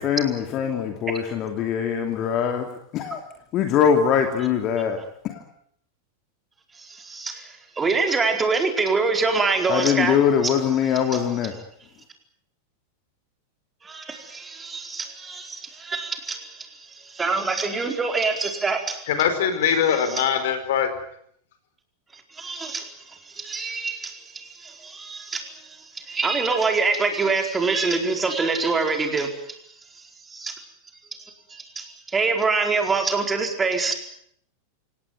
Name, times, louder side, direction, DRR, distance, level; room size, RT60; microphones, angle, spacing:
voice 1, 0.0-3.2 3.5-5.0 5.2-5.4 9.7-11.5, left 8 dB, 35° left, 5 dB, 2.8 m, -22 dB
voice 2, 6.7-10.2 10.4-10.5 13.8-19.0 19.9-20.3 22.3-29.6 30.0-30.1 30.3-30.6 31.2-33.9, right 4 dB, 15° right, 4 dB, 4.6 m, -25 dB
voice 3, 19.1-20.9, left 8 dB, 55° left, 9 dB, 4.7 m, -22 dB
28.0 x 18.0 x 9.6 m, 0.68 s
figure-of-eight pair, 90°, 0 cm